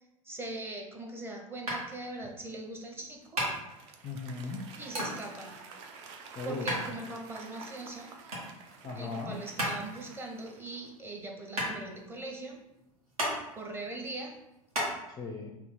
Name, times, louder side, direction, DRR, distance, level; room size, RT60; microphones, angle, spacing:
voice 1, 0.2-3.4 4.8-5.6 6.4-8.1 9.0-12.6 13.6-14.3, right 2 dB, 10° right, 1 dB, 0.7 m, -41 dB
sound 1, 1.7-14.9, equal, 75° right, 1.4 m, -37 dB
Applause / Crowd, 3.2-11.0, right 4 dB, 50° right, 0.6 m, -50 dB
voice 2, 4.0-4.7 6.3-6.9 8.8-9.4 15.1-15.5, left 3 dB, 20° left, 2 dB, 0.4 m, -38 dB
3.4 x 2.8 x 4.0 m, 0.92 s
figure-of-eight pair, 85°, 18 cm